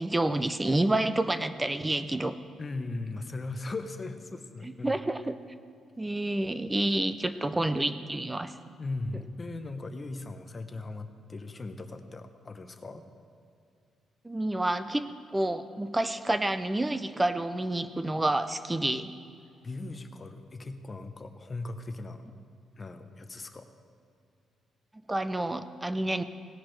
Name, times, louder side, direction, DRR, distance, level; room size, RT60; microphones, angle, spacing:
voice 1, 0.0-2.4 4.6-5.4 6.0-8.5 14.2-15.1 15.3-19.1 25.1-26.2, right 1 dB, 10° right, 11 dB, 0.3 m, -29 dB
voice 2, 2.6-5.0 8.8-13.0 19.6-22.2 22.8-23.7, left 2 dB, 20° left, 8 dB, 0.6 m, -38 dB
18.0 x 10.5 x 3.2 m, 2.5 s
cardioid pair, 170°, 0 cm